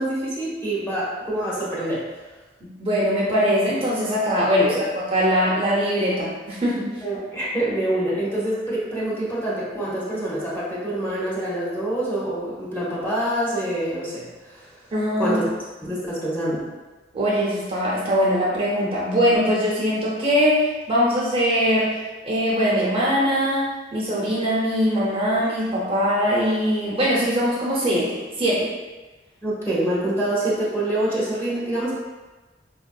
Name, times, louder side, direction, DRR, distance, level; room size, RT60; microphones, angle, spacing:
voice 1, 0.0-2.0 4.5-4.8 7.0-14.7 15.2-15.5 15.8-16.7 29.4-31.9, right 1 dB, 10° left, -7 dB, 0.9 m, -26 dB
voice 2, 2.6-6.9 14.9-15.4 17.1-22.0 22.2-28.7, equal, 30° right, -6 dB, 0.7 m, -22 dB
4.4 x 2.6 x 2.2 m, 1.2 s
head